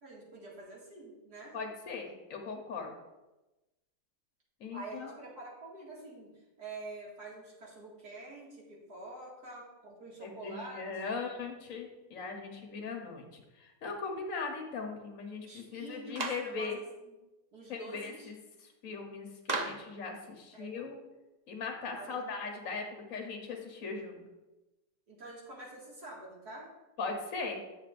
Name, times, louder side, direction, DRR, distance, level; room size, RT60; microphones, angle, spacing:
voice 1, 0.0-1.6 2.0-2.1 4.7-6.3 6.6-11.2 15.4-16.7 17.0-17.1 17.5-18.3 20.5-20.8 22.0-22.2 25.1-26.7, right 2 dB, 65° right, -4 dB, 2.5 m, -47 dB
voice 2, 1.5-2.9 4.6-5.1 10.2-16.8 17.7-18.4 18.8-21.0 21.5-24.3 27.0-27.6, left 4 dB, 55° left, 2 dB, 1.2 m, -39 dB
Clapping, 16.2-16.5 19.5-19.9, right 3 dB, 50° right, 0.5 m, -34 dB
9.2 x 7.4 x 2.5 m, 1.0 s
omnidirectional pair, 1.8 m